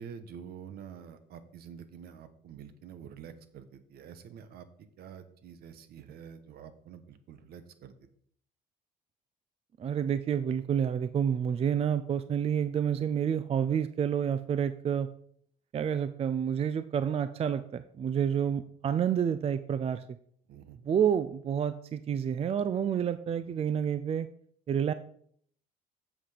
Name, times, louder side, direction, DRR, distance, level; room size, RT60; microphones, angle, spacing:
voice 1, 0.0-7.9 20.5-20.8, right 7 dB, 70° right, 11 dB, 1.2 m, -47 dB
voice 2, 9.8-15.1 15.7-20.0 20.9-24.3 24.7-24.9, right 8 dB, 35° right, 13 dB, 0.5 m, -29 dB
8.2 x 7.3 x 5.0 m, 0.63 s
cardioid pair, 110°, 17 cm